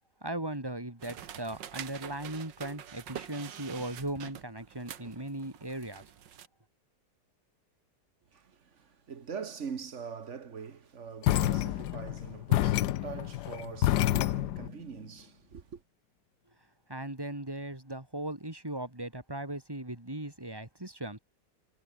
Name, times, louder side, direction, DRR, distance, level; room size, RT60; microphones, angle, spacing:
voice 1, 0.2-6.0 16.9-21.2, right 1 dB, 10° right, 3.5 m, -38 dB
sound 1, 1.0-6.5, right 9 dB, 85° right, 1.9 m, -46 dB
voice 2, 8.3-15.8, right 6 dB, 45° right, 1.7 m, -43 dB
sound 2, 11.2-14.7, left 14 dB, 70° left, 1.2 m, -28 dB
omnidirectional pair, 1.9 m